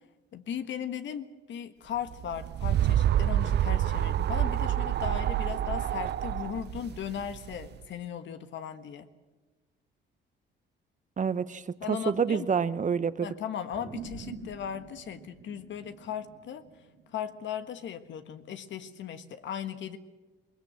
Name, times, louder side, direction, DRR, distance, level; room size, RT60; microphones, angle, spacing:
voice 1, 0.3-9.1 11.8-12.5 13.2-16.6 17.1-20.0, left 8 dB, 70° left, 9 dB, 1.5 m, -37 dB
sound 1, 2.1-7.7, right 11 dB, 60° right, 0.7 m, -27 dB
voice 2, 11.2-13.3, right 6 dB, 40° right, 14 dB, 1.0 m, -28 dB
sound 2, 13.7-18.5, right 5 dB, 75° right, 3.3 m, -46 dB
21.5 x 21.0 x 7.7 m, 1.2 s
cardioid pair, 90°, 20 cm